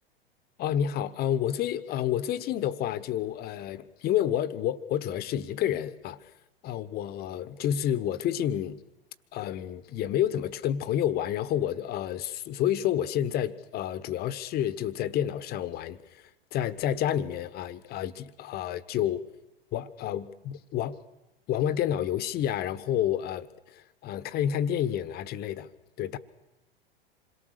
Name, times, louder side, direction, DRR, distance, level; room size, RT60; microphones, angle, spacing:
voice 1, 0.6-6.3 6.6-8.8 9.3-19.2 19.7-21.0 21.5-25.7 26.0-26.2, left 10 dB, 30° left, 1.3 m, -29 dB
27.0 x 22.5 x 6.8 m
figure-of-eight pair, 95°, 30 cm